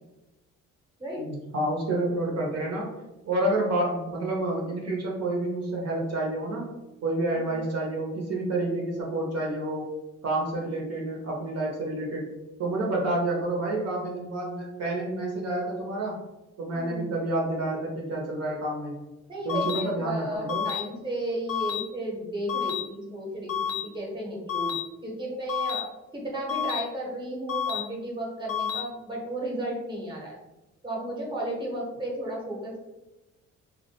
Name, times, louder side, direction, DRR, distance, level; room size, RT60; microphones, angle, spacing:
voice 1, 1.2-2.9 3.3-6.7 7.0-9.9 10.2-12.3 12.6-16.2 16.6-18.9 19.4-20.7, right 2 dB, 55° right, -2 dB, 0.6 m, -29 dB
voice 2, 16.7-17.1 19.3-25.9 26.1-30.4 30.8-32.8, right 1 dB, 15° right, -2 dB, 0.8 m, -34 dB
sound 1, 19.5-19.8 20.5-20.8 21.5-21.8 22.5-22.8 23.5-23.8 24.5-24.8 25.5-25.8 26.5-26.8 27.5-27.8 28.5-28.8, left 9 dB, 50° left, 0.4 m, -29 dB
2.2 x 2.1 x 2.8 m, 1.0 s
cardioid pair, 90°, 30 cm